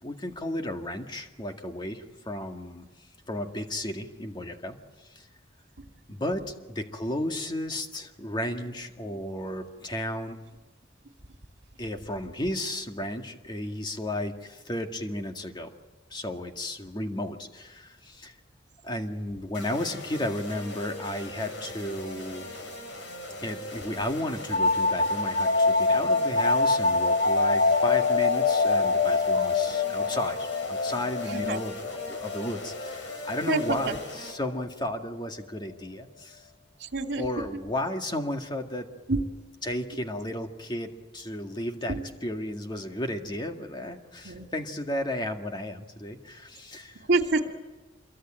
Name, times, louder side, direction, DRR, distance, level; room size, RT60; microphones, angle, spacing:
voice 1, 0.0-2.9 3.3-4.8 5.2-5.3 6.1-10.4 11.8-15.7 16.1-18.3 18.8-22.5 23.4-31.7 32.1-36.4 37.2-38.9 39.6-47.0, left 1 dB, 25° left, 4 dB, 2.0 m, -33 dB
sound 1, 19.5-34.3, left 1 dB, 80° left, 6.2 m, -40 dB
sound 2, 24.5-33.9, left 3 dB, 50° left, 0.9 m, -25 dB
voice 2, 31.3-31.6 33.5-33.9 36.8-37.2 39.1-39.2 41.9-42.0 44.2-44.5 47.1-47.5, right 3 dB, 65° right, 4 dB, 2.4 m, -27 dB
27.0 x 23.0 x 9.0 m, 1.2 s
head